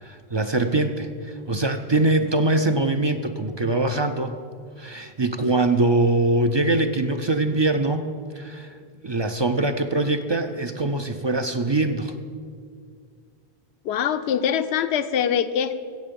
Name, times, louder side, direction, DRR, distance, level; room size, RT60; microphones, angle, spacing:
voice 1, 0.0-4.4 4.8-8.0 8.3-8.7 9.0-12.1, right 2 dB, 40° right, 8 dB, 0.4 m, -23 dB
voice 2, 13.8-15.8, left 8 dB, 90° left, 12 dB, 0.9 m, -23 dB
15.5 x 7.7 x 5.2 m, 2.1 s
omnidirectional pair, 1.1 m